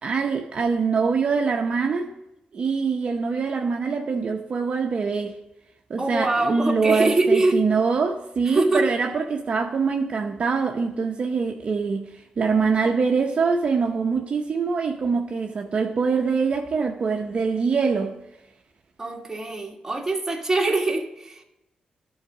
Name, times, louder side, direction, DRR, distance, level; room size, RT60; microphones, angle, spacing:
voice 1, 0.0-2.1 2.5-5.4 5.9-18.2, right 5 dB, 50° right, 0.7 m, -24 dB
voice 2, 6.0-7.6 8.4-8.9 19.0-21.4, right 2 dB, 15° right, 1.5 m, -23 dB
11.5 x 4.0 x 6.1 m
cardioid pair, 90°, 3 cm